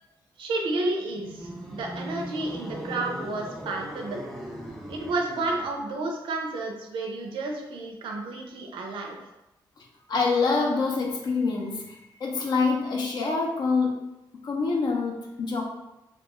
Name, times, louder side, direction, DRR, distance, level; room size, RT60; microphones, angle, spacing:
voice 1, 0.4-4.2 4.9-9.2, right 2 dB, 85° right, 1 dB, 0.4 m, -31 dB
sound 1, 1.1-5.8, right 1 dB, ahead, 0.4 m, -39 dB
voice 2, 10.1-14.0 14.4-15.6, left 4 dB, 55° left, 0 dB, 0.5 m, -26 dB
2.3 x 2.3 x 2.9 m, 0.94 s
cardioid pair, 125°, 8 cm